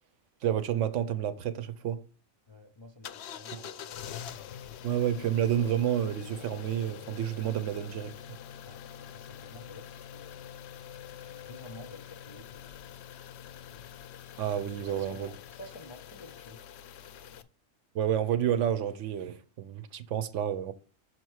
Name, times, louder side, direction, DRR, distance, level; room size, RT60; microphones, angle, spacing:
voice 1, 0.4-2.0 3.5-3.7 4.8-8.1 14.4-15.3 17.9-20.7, right 10 dB, 70° right, 0.9 m, -30 dB
voice 2, 2.5-4.2 8.6-10.6 11.2-12.9 13.4-13.8 14.8-16.6, left 2 dB, 35° left, 0.5 m, -51 dB
sound 1, 3.0-17.4, left 9 dB, 65° left, 0.7 m, -45 dB
6.4 x 4.4 x 4.7 m
omnidirectional pair, 1.4 m